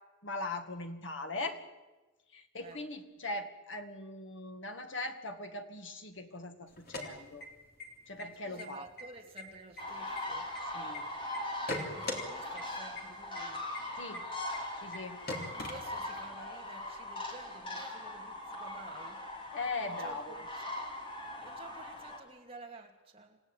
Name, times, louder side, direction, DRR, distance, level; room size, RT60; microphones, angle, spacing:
voice 1, 0.2-1.6 2.3-7.5 8.1-8.8 10.7-11.1 14.0-14.3 14.8-15.3 19.5-20.4, left 2 dB, 65° left, 6 dB, 2.1 m, -40 dB
sound 1, 6.7-7.8 8.2-8.3 8.6-9.0 9.4-11.0 11.3-12.2 12.6-12.7 13.0-13.1 13.3-13.4 13.7-13.8 14.1-14.2 14.5-14.6 14.9-15.0 15.3-16.3, left 2 dB, 45° left, 3.5 m, -39 dB
voice 2, 8.4-10.5 11.7-13.6 15.4-19.2 19.8-20.5 21.4-23.4, right 2 dB, 25° right, 1 dB, 2.6 m, -52 dB
sound 2, 9.8-22.2, left 1 dB, 25° left, 3.1 m, -41 dB
27.5 x 16.5 x 9.0 m, 1.1 s
head